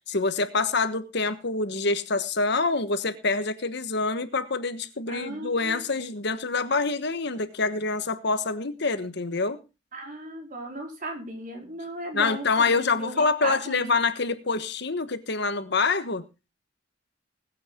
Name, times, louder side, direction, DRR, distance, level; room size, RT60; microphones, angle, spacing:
voice 1, 0.1-9.6 12.1-16.2, left 3 dB, 60° left, 11 dB, 1.3 m, -26 dB
voice 2, 5.1-5.8 9.9-13.8, right 1 dB, 45° right, 2 dB, 4.5 m, -36 dB
20.5 x 8.7 x 3.7 m, 0.29 s
head